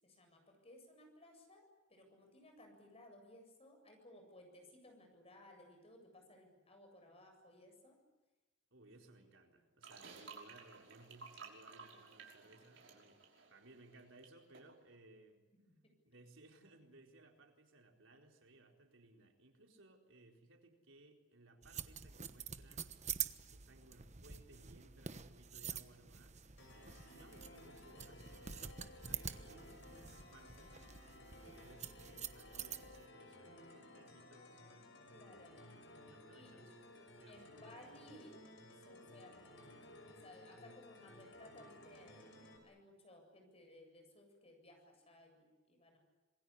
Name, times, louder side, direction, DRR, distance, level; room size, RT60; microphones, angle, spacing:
voice 1, 0.0-8.0 9.2-9.6 15.7-15.8 35.1-35.6 36.3-36.8 37.3-38.4 38.7-46.0, left 1 dB, 30° left, 4 dB, 7.7 m, -60 dB
voice 2, 8.7-13.2 13.5-15.5 16.0-22.9 23.5-26.5 26.7-30.7 31.4-34.6 35.5-35.8 36.1-37.9, right 2 dB, 85° right, 2 dB, 4.3 m, -63 dB
sound 1, 9.8-14.3 14.5-14.7, right 4 dB, 70° right, 5.8 m, -55 dB
sound 2, 21.6-33.1, right 8 dB, 35° right, 1.1 m, -47 dB
sound 3, 26.6-42.6, left 1 dB, 65° left, 6.0 m, -58 dB
27.0 x 21.5 x 10.0 m, 1.1 s
head